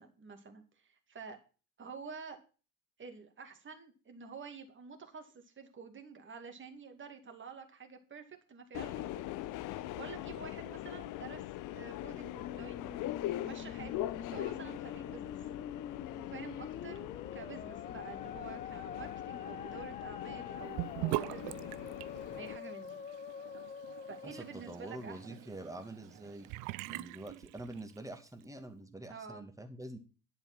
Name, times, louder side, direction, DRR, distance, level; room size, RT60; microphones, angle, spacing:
voice 1, 0.0-1.4 1.8-2.4 3.0-9.3 10.0-11.4 11.7-12.9 13.4-15.3 16.2-21.8 22.4-23.0 24.1-25.2 29.1-29.4, right 5 dB, 30° right, 5 dB, 2.4 m, -49 dB
Subway metro underground, 8.7-22.6, left 14 dB, 50° left, 0.7 m, -42 dB
Musical instrument, 11.9-25.3, left 7 dB, 20° left, 0.5 m, -46 dB
Sink (filling or washing) / Bathtub (filling or washing), 20.8-28.1, right 20 dB, 55° right, 0.5 m, -42 dB
voice 2, 24.2-26.5 26.9-30.0, right 1 dB, 10° right, 6 dB, 2.3 m, -46 dB
11.0 x 7.3 x 6.1 m, 0.35 s
figure-of-eight pair, 55°, 40 cm